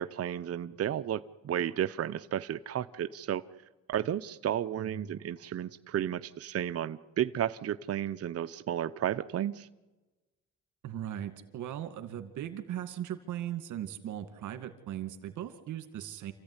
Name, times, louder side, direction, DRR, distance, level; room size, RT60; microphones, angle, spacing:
voice 1, 0.0-3.4 3.9-9.7, right 10 dB, 50° right, 12 dB, 0.7 m, -33 dB
voice 2, 4.8-5.1 10.8-16.3, right 11 dB, 80° right, 9 dB, 2.2 m, -38 dB
28.0 x 15.0 x 9.8 m, 1.2 s
cardioid pair, 90°, 30 cm